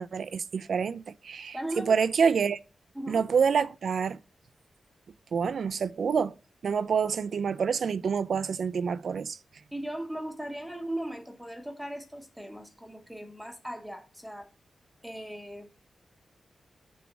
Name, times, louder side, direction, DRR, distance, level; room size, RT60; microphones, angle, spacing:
voice 1, 0.0-2.6 3.1-4.2 5.3-6.3 6.6-9.4, right 6 dB, 65° right, 0.3 m, -27 dB
voice 2, 1.5-2.0 2.9-3.3 9.7-14.5 15.0-15.7, right 1 dB, 5° right, 0.8 m, -38 dB
6.8 x 3.1 x 6.0 m
wide cardioid pair, 145°, 0 cm